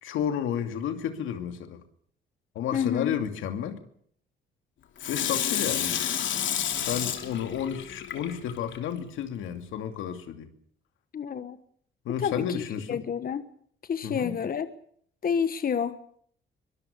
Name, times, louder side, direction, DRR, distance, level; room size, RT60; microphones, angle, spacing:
voice 1, 0.0-1.8 2.5-3.8 5.1-6.0 6.9-10.5 12.0-13.0 14.0-14.4, left 9 dB, 90° left, 8 dB, 2.6 m, -31 dB
voice 2, 2.7-3.1 11.1-11.6 12.2-12.6 12.9-13.5 13.9-14.7 15.2-16.2, left 7 dB, 45° left, 12 dB, 1.3 m, -29 dB
Water tap faucet / Sink (filling or washing), 5.0-8.8 9.3-9.4, left 9 dB, 70° left, 3.1 m, -30 dB
24.0 x 19.5 x 6.8 m, 0.62 s
cardioid pair, 90°, 20 cm